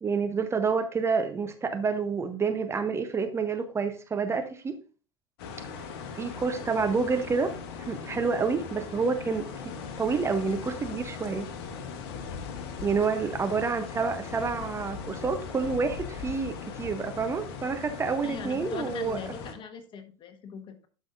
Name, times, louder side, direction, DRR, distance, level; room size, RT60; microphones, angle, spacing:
voice 1, 0.0-4.8 6.1-7.5 7.8-9.5 10.0-11.5 12.8-19.2, right 5 dB, 20° right, 0.8 m, -28 dB
Ambiance Wind Forest Calm Loop Stereo, 5.4-19.5, left 6 dB, 55° left, 1.2 m, -39 dB
voice 2, 18.2-20.9, left 6 dB, 35° left, 1.4 m, -40 dB
11.5 x 5.6 x 2.6 m
figure-of-eight pair, 80°, 15 cm